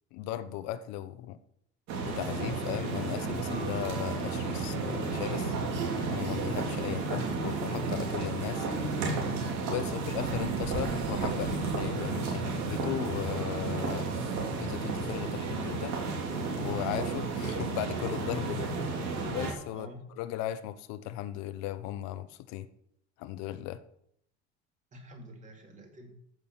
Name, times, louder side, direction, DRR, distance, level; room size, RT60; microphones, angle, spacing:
voice 1, 0.1-1.4 2.1-5.5 6.0-8.7 9.7-14.1 14.6-16.0 16.6-18.7 19.2-22.7 23.2-23.8, left 13 dB, 65° left, 13 dB, 0.8 m, -37 dB
sound 1, 1.9-19.5, right 4 dB, 65° right, 3.6 m, -32 dB
voice 2, 18.5-18.9 19.7-20.0 24.9-26.1, right 1 dB, 25° right, 2 dB, 2.3 m, -46 dB
14.5 x 6.3 x 7.2 m, 0.72 s
cardioid pair, 175°, 29 cm